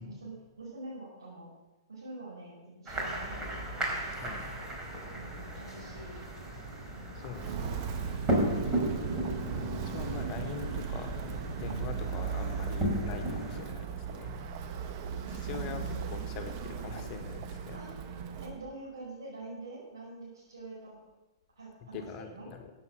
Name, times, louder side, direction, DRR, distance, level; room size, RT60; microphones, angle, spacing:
voice 1, 0.0-1.5 1.9-4.0 5.1-6.1 6.9-7.3 11.6-12.0 15.2-16.1 17.7-17.9 18.4-21.0 21.6-22.5, right 2 dB, 85° right, -8 dB, 5.8 m, -46 dB
sound 1, 2.9-13.6, right 1 dB, 20° right, 4.1 m, -35 dB
voice 2, 4.2-4.5 7.2-8.1 9.4-11.1 11.5-14.4 15.3-17.8 21.9-22.7, left 6 dB, 35° left, 5 dB, 1.7 m, -43 dB
Walk footsteps, 7.3-18.6, right 7 dB, 45° right, 1.4 m, -37 dB
16.0 x 8.5 x 6.3 m, 1.1 s
hypercardioid pair, 115°, 2 cm